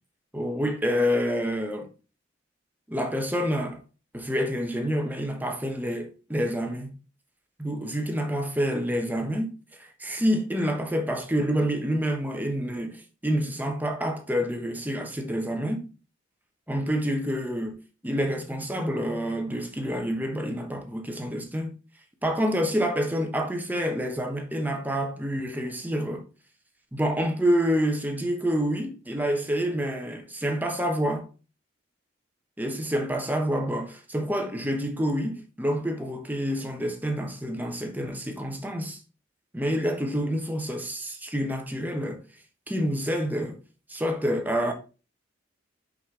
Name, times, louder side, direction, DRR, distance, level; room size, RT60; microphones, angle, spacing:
voice 1, 0.3-1.9 2.9-3.8 4.1-7.0 7.6-15.9 16.7-17.8 18.0-21.8 22.2-26.2 26.9-31.3 32.6-39.0 39.5-42.2 42.7-43.6 43.9-44.7, equal, 10° right, 1.0 m, -28 dB
5.6 x 5.3 x 3.7 m
head